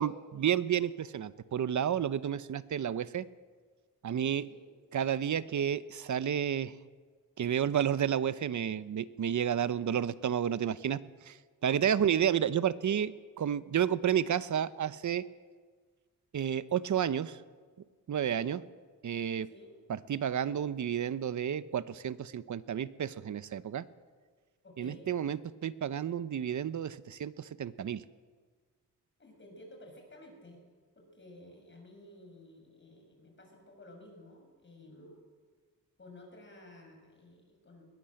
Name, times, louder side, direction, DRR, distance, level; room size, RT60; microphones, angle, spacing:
voice 1, 0.0-3.2 4.0-4.4 4.9-6.7 7.4-11.0 11.3-11.4 11.6-15.2 16.3-17.4 18.1-18.6 19.0-19.5 19.9-23.8 24.8-28.0, right 9 dB, 60° right, 15 dB, 0.8 m, -31 dB
voice 2, 4.4-4.7 9.6-9.7 18.2-18.5 19.4-19.7 24.6-25.2 29.2-30.6 31.0-35.2 36.0-37.9, left 1 dB, 35° left, 2 dB, 7.1 m, -53 dB
21.0 x 20.0 x 7.8 m, 1.5 s
wide cardioid pair, 120°, 34 cm